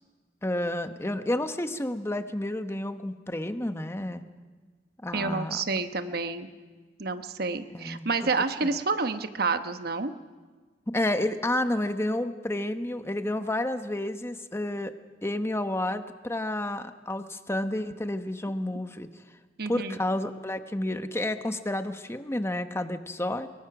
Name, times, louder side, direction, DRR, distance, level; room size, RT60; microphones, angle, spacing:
voice 1, 0.4-4.2 5.0-5.6 7.7-8.0 8.6-8.7 10.9-14.9 15.2-19.1 19.7-23.5, left 1 dB, 15° left, 9 dB, 1.0 m, -30 dB
voice 2, 5.1-6.5 7.0-10.1 19.6-20.0, right 4 dB, 60° right, 9 dB, 1.1 m, -29 dB
23.0 x 22.0 x 6.1 m, 1.4 s
head